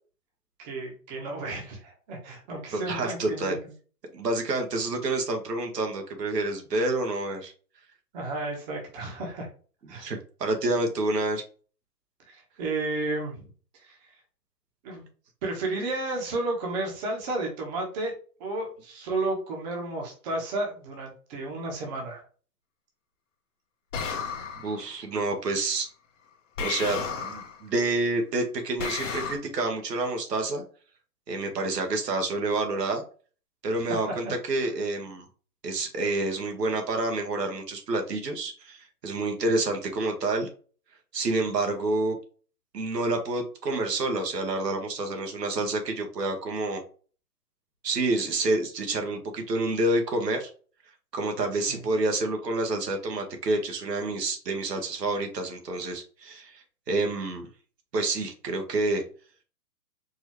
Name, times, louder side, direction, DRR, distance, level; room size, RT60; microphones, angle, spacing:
voice 1, 0.6-3.6 8.1-9.5 9.9-10.1 12.3-13.4 13.8-14.0 14.8-15.0 15.4-18.1 18.4-22.2 33.8-34.2 51.5-51.8, right 2 dB, 25° right, 0 dB, 1.2 m, -32 dB
voice 2, 2.7-3.6 4.1-7.5 9.9-11.4 24.6-25.9 26.6-30.6 31.3-33.0 33.6-35.2 35.6-40.5 41.1-42.2 42.7-46.8 47.8-50.5 51.1-57.5 57.9-59.0, right 2 dB, 80° right, 4 dB, 1.4 m, -28 dB
sound 1, 23.9-24.8 26.6-27.6 28.8-29.4, left 6 dB, 50° left, 1.0 m, -33 dB
4.6 x 2.9 x 3.0 m, 0.40 s
hypercardioid pair, 150°, 48 cm